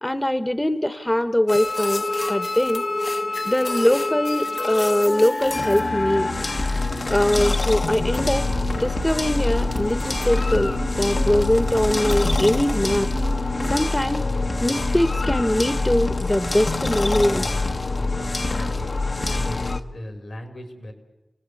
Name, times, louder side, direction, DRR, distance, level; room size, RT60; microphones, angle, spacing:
voice 1, 0.0-2.9 3.4-6.3 7.1-8.5 8.8-13.1 13.7-14.2 14.6-17.5, left 1 dB, 20° left, 12 dB, 1.0 m, -22 dB
sound 1, 1.5-19.8, left 2 dB, 60° left, 1.1 m, -25 dB
sound 2, 2.2-13.8, right 2 dB, 45° right, 1.1 m, -39 dB
sound 3, 7.8-13.4, right 2 dB, 80° right, 1.9 m, -34 dB
voice 2, 17.9-20.9, left 1 dB, 85° left, 5 dB, 4.5 m, -38 dB
29.0 x 18.5 x 8.4 m, 1.1 s
cardioid pair, 45°, 0 cm